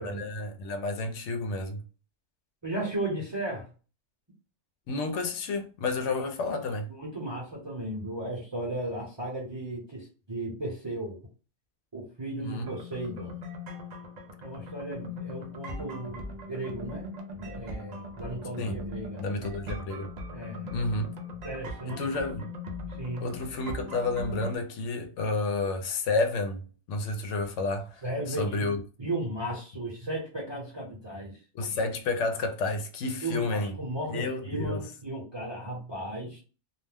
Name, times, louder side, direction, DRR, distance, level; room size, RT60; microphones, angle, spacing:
voice 1, 0.0-1.8 4.9-6.9 12.4-12.7 18.6-18.8 19.2-20.1 20.7-21.1 21.9-22.5 23.2-28.0 28.4-28.8 31.5-33.7 34.1-34.8, left 3 dB, 75° left, 0.9 m, -30 dB
voice 2, 2.6-3.7 6.9-11.2 11.9-13.4 14.4-19.2 20.3-20.7 21.4-22.3 22.9-23.3 28.0-31.4 33.2-36.4, right 1 dB, 25° right, 0.8 m, -35 dB
sound 1, 12.7-24.6, left 1 dB, 55° right, 0.5 m, -40 dB
2.4 x 2.1 x 3.3 m
omnidirectional pair, 1.3 m